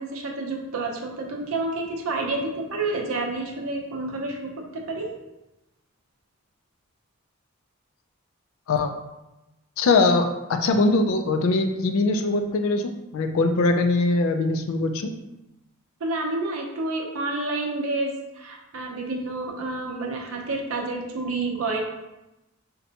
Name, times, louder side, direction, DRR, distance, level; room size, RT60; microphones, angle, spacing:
voice 1, 0.0-5.1 16.0-21.8, right 2 dB, 70° right, 1 dB, 0.6 m, -29 dB
voice 2, 9.8-15.1, left 3 dB, 65° left, 6 dB, 0.3 m, -22 dB
3.9 x 2.2 x 2.7 m, 0.96 s
head